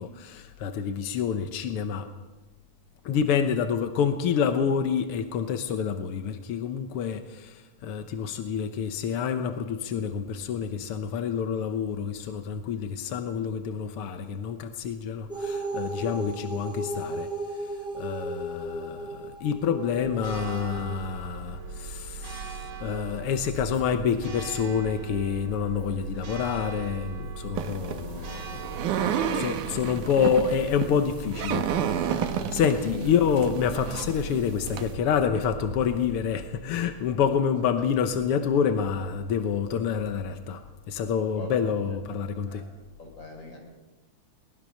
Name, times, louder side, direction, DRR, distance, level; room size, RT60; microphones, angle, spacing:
voice 1, 0.0-2.1 3.0-17.3 17.9-28.7 29.0-40.6 40.9-42.6, left 7 dB, 65° left, 8 dB, 1.4 m, -28 dB
sound 1, 15.3-20.9, right 2 dB, ahead, 4.6 m, -35 dB
Church bell, 19.9-37.1, right 4 dB, 50° right, 1.3 m, -39 dB
sound 2, 27.6-34.9, right 8 dB, 75° right, 2.7 m, -31 dB
voice 2, 27.9-28.3 28.7-29.9 30.2-30.3 37.5-37.6 39.4-39.5 41.3-41.5 42.5-42.7 43.0-43.6, left 2 dB, 35° left, 2 dB, 5.4 m, -42 dB
23.0 x 19.5 x 6.5 m, 1.2 s
omnidirectional pair, 3.7 m